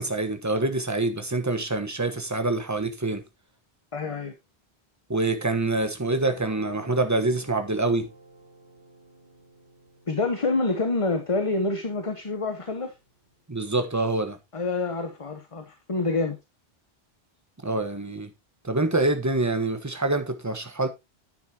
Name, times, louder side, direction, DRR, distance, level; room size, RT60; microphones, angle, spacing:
voice 1, 0.0-3.2 5.1-8.1 13.5-14.4 17.6-18.3 18.6-20.9, right 2 dB, 15° right, 1.2 m, -26 dB
voice 2, 3.9-4.3 10.1-12.9 14.5-16.4, left 3 dB, 30° left, 1.1 m, -27 dB
Guitar, 6.1-12.5, right 2 dB, 55° left, 5.2 m, -50 dB
10.0 x 9.5 x 2.8 m
omnidirectional pair, 1.1 m